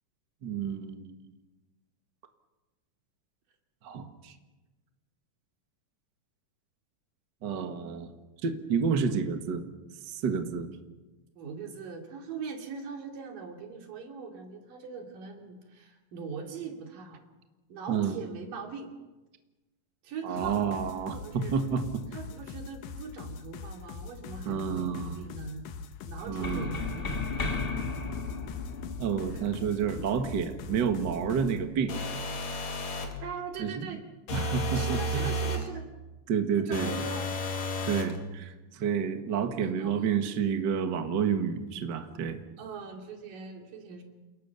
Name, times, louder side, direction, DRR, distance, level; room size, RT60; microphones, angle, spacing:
voice 1, 0.4-1.1 3.8-4.3 7.4-8.1 8.4-9.7 10.0-10.7 17.9-18.2 20.2-22.0 24.5-25.2 26.3-26.8 29.0-31.9 33.6-34.0 34.3-35.3 36.3-37.0 37.9-42.4, right 6 dB, 45° right, 7 dB, 1.7 m, -30 dB
voice 2, 11.4-17.2 17.7-18.9 20.0-20.6 21.1-21.6 22.1-25.7 26.1-27.7 29.3-29.5 33.2-34.0 34.8-35.9 36.6-37.3 39.6-40.1 42.6-44.0, right 5 dB, 80° right, 3 dB, 4.2 m, -41 dB
sound 1, 20.4-31.6, left 5 dB, 85° left, 2.9 m, -42 dB
sound 2, 26.2-31.9, left 3 dB, 35° left, 0.9 m, -36 dB
sound 3, 31.9-33.2 34.3-35.7 36.7-38.2, equal, 60° left, 3.4 m, -32 dB
28.5 x 19.0 x 7.0 m, 1.2 s
omnidirectional pair, 3.8 m